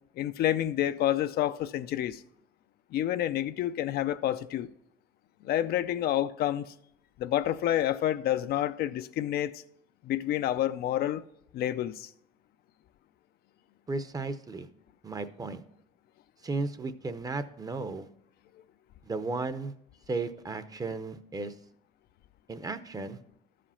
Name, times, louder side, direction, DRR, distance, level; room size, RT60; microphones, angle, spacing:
voice 1, 0.2-2.2 2.9-4.7 5.4-6.6 7.2-9.6 10.0-11.2 11.5-12.1, left 12 dB, 70° left, 0.5 m, -28 dB
voice 2, 13.9-14.7 15.0-15.6 16.4-18.1 19.0-19.7 20.1-21.5 22.5-23.2, right 3 dB, 20° right, 0.7 m, -34 dB
13.0 x 5.0 x 5.7 m
cardioid pair, 110°, 17 cm